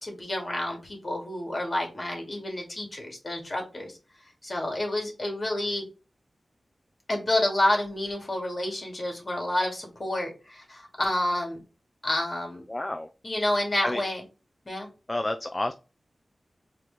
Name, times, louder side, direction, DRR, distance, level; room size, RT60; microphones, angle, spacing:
voice 1, 0.0-4.0 4.4-5.9 7.1-11.6 12.0-12.6 13.2-14.2 14.7-14.9, left 1 dB, 40° left, 1 dB, 2.2 m, -29 dB
voice 2, 12.7-13.1 13.8-14.0 15.1-15.7, left 1 dB, 25° left, 7 dB, 0.4 m, -29 dB
4.8 x 3.1 x 3.4 m, 0.31 s
wide cardioid pair, 85°, 0 cm